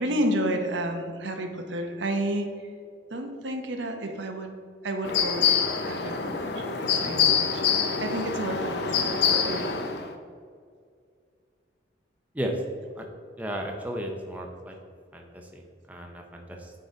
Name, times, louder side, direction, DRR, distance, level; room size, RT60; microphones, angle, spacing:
voice 1, 0.0-2.5 3.1-4.5 4.8-5.5 5.7-9.8, right 1 dB, 75° right, 4 dB, 0.8 m, -31 dB
sound 1, 5.0-10.1, left 6 dB, 60° left, 0.6 m, -25 dB
voice 2, 13.4-14.8 15.1-16.7, right 1 dB, 10° right, 1 dB, 0.6 m, -34 dB
9.1 x 3.8 x 3.9 m, 2.2 s
head